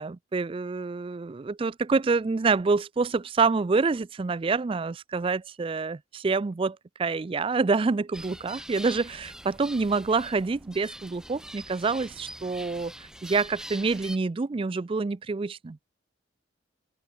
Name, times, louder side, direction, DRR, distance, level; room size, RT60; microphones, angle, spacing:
voice 1, 0.0-12.9 13.2-15.8, right 4 dB, 30° right, 0.4 m, -27 dB
sound 1, 8.1-14.2, right 1 dB, 5° right, 2.5 m, -43 dB
open air
head